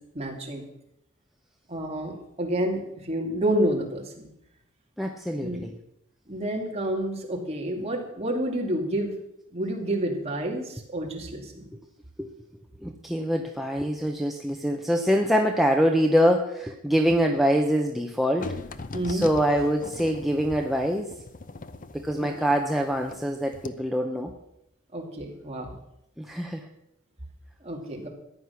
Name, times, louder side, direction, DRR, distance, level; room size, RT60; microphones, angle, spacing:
voice 1, 0.1-0.6 1.7-4.3 5.4-5.6 6.3-9.1 9.5-11.7 18.9-19.3 22.2-22.3 24.9-25.8 27.6-28.1, right 1 dB, 30° right, 0 dB, 2.6 m, -29 dB
voice 2, 5.0-5.7 12.2-12.3 12.8-18.6 19.1-21.2 21.9-24.3 26.2-26.7, equal, ahead, 2 dB, 0.8 m, -24 dB
sound 1, 18.4-23.3 23.5-23.7, left 3 dB, 40° left, 0.7 m, -40 dB
14.5 x 9.9 x 5.9 m, 0.82 s
head